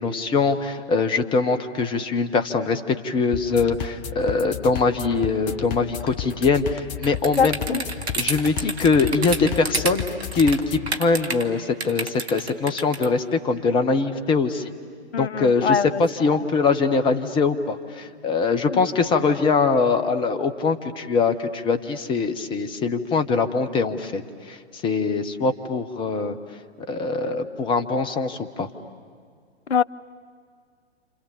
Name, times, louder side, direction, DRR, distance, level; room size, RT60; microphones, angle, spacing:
voice 1, 0.0-7.8 8.2-10.0 10.3-14.7 15.2-24.6 24.8-26.4 26.8-28.7, left 4 dB, 15° left, 9 dB, 1.0 m, -22 dB
sound 1, 3.3-10.9, left 9 dB, 40° left, 1.3 m, -33 dB
sound 2, 7.0-11.4 11.8-13.1, right 3 dB, 65° right, 1.9 m, -29 dB
voice 2, 7.4-7.8 15.1-16.0 16.3-16.4 18.7-18.8 29.7-29.8, left 6 dB, 70° left, 20 dB, 0.6 m, -23 dB
29.5 x 27.5 x 7.2 m, 2.1 s
figure-of-eight pair, 115°, 34 cm